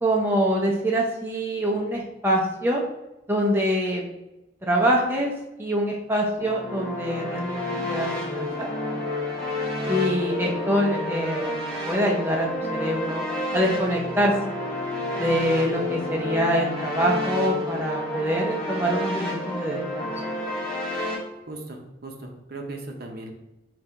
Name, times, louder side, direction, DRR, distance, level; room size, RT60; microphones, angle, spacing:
voice 1, 0.0-2.8 3.3-4.0 4.6-5.3 5.6-8.7 9.9-11.5 11.9-13.2 13.5-14.3 15.2-20.1, equal, 10° right, -2 dB, 0.5 m, -25 dB
sound 1, 6.4-21.1, left 1 dB, 5° left, 1.4 m, -30 dB
voice 2, 21.5-23.3, right 2 dB, 55° right, 3 dB, 0.7 m, -37 dB
3.7 x 2.8 x 4.4 m, 0.96 s
head